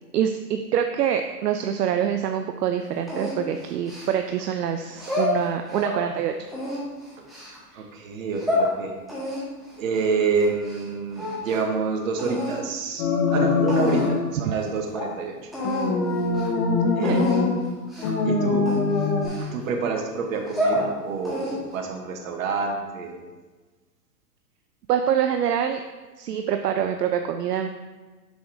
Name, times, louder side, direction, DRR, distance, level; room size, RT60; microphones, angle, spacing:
voice 1, 0.1-6.3 7.7-7.8 17.0-17.3 24.9-25.8 26.2-27.8, right 9 dB, 75° right, 6 dB, 0.6 m, -25 dB
sound 1, 3.1-4.4 4.9-6.0 6.5-7.6 8.1-8.7 9.1-10.9 11.1-11.8 12.2-12.6 13.3-13.4 13.7-14.2 14.6-14.7 14.9-15.1 15.5-15.9 16.2-16.5 17.0-17.4 17.9-18.2 18.7-19.8 20.3-20.8 21.2-21.8, left 1 dB, ahead, 1.4 m, -29 dB
voice 2, 7.7-9.0 9.8-15.5 16.9-17.6 18.2-18.7 19.4-23.2, right 4 dB, 55° right, 3 dB, 1.2 m, -28 dB
sound 2, 13.0-14.3 15.6-17.6 18.0-19.3, left 4 dB, 25° left, 0.6 m, -23 dB
6.8 x 6.2 x 2.6 m, 1.3 s
hypercardioid pair, 130°, 49 cm